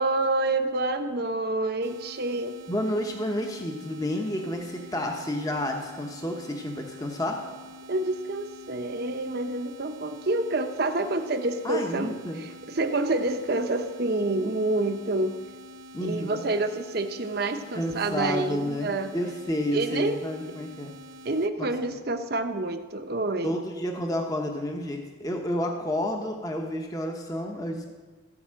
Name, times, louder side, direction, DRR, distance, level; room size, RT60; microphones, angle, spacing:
voice 1, 0.0-2.6 7.9-15.4 16.0-19.1 19.7-20.2 21.2-23.6, right 2 dB, 50° right, 7 dB, 0.8 m, -28 dB
sound 1, 1.8-21.5, equal, 75° right, 0.5 m, -47 dB
voice 2, 2.7-7.4 11.6-12.4 15.9-16.4 17.7-20.9 21.6-21.7 23.4-27.8, left 1 dB, 20° left, 2 dB, 1.0 m, -30 dB
16.0 x 5.5 x 7.6 m, 1.4 s
head